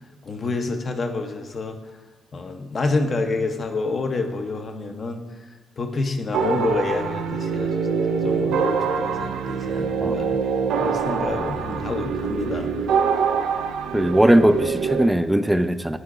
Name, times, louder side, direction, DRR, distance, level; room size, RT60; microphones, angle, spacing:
voice 1, 0.2-1.8 2.3-5.2 5.8-10.4 10.8-12.7, left 3 dB, 40° left, 5 dB, 0.7 m, -28 dB
sound 1, 6.3-15.1, right 5 dB, 80° right, 0.5 m, -24 dB
voice 2, 13.9-16.0, right 1 dB, 5° right, 11 dB, 0.4 m, -19 dB
8.9 x 3.8 x 4.8 m, 1.5 s
cardioid pair, 90°, 0 cm